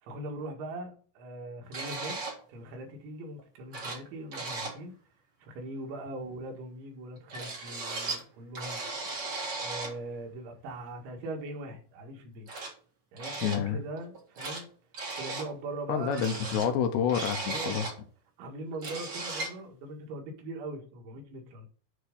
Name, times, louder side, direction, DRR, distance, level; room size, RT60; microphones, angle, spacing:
voice 1, 0.0-2.2 2.5-4.9 5.4-8.8 9.6-12.5 13.1-14.7 15.2-16.4 17.5-17.9 18.4-21.7, right 2 dB, 80° right, 2 dB, 4.1 m, -41 dB
sound 1, 1.7-2.4 3.4-3.5 3.7-4.1 4.3-4.8 7.3-8.2 8.5-10.0 11.4-11.5 12.5-12.7 13.2-13.6 14.0-14.6 14.9-15.5 16.1-18.0 18.4-18.5 18.7-19.6, right 3 dB, 50° right, 1.2 m, -36 dB
voice 2, 13.4-13.8 15.9-17.9, left 8 dB, 80° left, 8 dB, 2.7 m, -28 dB
9.7 x 3.5 x 6.6 m, 0.42 s
omnidirectional pair, 5.4 m